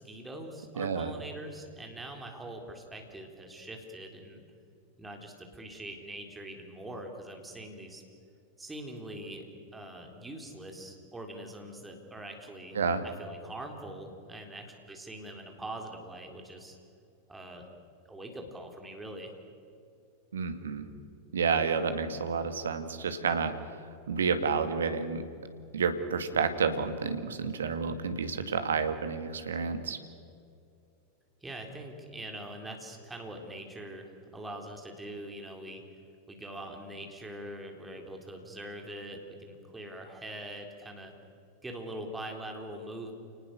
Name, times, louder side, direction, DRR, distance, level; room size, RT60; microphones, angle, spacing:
voice 1, 0.0-4.4 5.0-8.0 8.6-9.4 9.7-12.8 13.0-16.8 17.3-17.7 18.1-19.3 31.4-35.8 36.3-41.1 41.6-43.1, right 1 dB, 10° right, 2 dB, 3.9 m, -43 dB
voice 2, 0.8-1.1 12.7-13.0 20.3-20.9 21.3-23.5 24.1-25.2 25.7-30.0, right 5 dB, 65° right, 9 dB, 2.0 m, -30 dB
29.5 x 19.5 x 6.6 m, 2.4 s
figure-of-eight pair, 90°, 0 cm